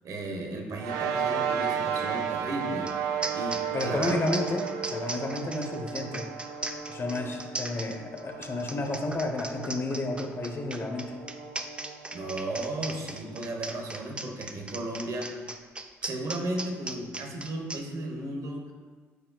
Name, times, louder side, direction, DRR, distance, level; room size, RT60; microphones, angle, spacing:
voice 1, 0.0-2.9 3.3-4.3 12.1-15.4 16.0-18.7, right 1 dB, 60° right, 2 dB, 1.1 m, -35 dB
sound 1, 0.8-13.5, right 7 dB, 80° right, 0.5 m, -34 dB
sound 2, 2.9-3.0 3.2-17.8, right 2 dB, 15° right, 0.5 m, -37 dB
voice 2, 3.7-6.3 6.9-11.1, left 2 dB, 40° left, 3 dB, 0.9 m, -31 dB
9.1 x 4.5 x 2.4 m, 1.5 s
hypercardioid pair, 55°, 6 cm